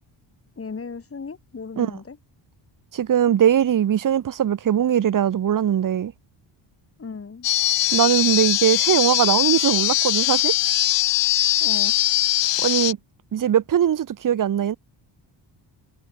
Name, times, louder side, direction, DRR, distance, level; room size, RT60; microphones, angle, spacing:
voice 1, 0.6-2.2 7.0-7.5 11.6-12.0, left 5 dB, 30° left, 5.8 m, -35 dB
voice 2, 2.9-6.1 7.9-10.5 12.6-13.0 13.3-14.8, right 9 dB, 40° right, 1.0 m, -20 dB
sound 1, 7.4-12.9, left 15 dB, 65° left, 0.7 m, -21 dB
cardioid pair, 140°, 48 cm